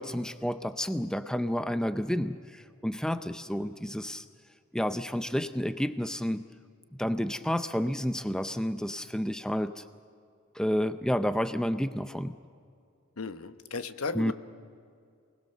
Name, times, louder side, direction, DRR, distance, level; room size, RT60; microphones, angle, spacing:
voice 1, 0.0-4.2 4.7-6.4 7.0-9.8 10.5-12.4 14.1-14.3, equal, 5° left, 10 dB, 0.6 m, -30 dB
voice 2, 13.2-14.3, left 4 dB, 90° left, 11 dB, 1.0 m, -35 dB
27.0 x 20.0 x 6.7 m, 2.3 s
head